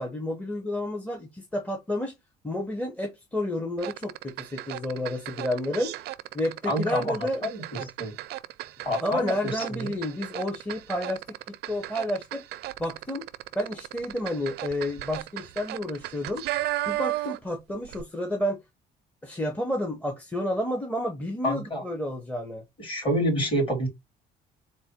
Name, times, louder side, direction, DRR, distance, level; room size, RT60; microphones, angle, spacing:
voice 1, 0.0-2.1 2.4-5.9 6.3-7.4 9.0-12.4 12.8-13.2 13.5-16.4 16.9-18.6 19.2-22.6, left 1 dB, 10° left, 0.9 m, -30 dB
sound 1, 3.8-17.6 17.8-18.0, right 16 dB, 75° right, 0.4 m, -35 dB
voice 2, 6.7-7.6 8.0-8.1 8.8-10.0 21.4-21.8 22.8-23.9, equal, 30° left, 2.7 m, -28 dB
4.0 x 2.2 x 4.4 m
cardioid pair, 110°, 17 cm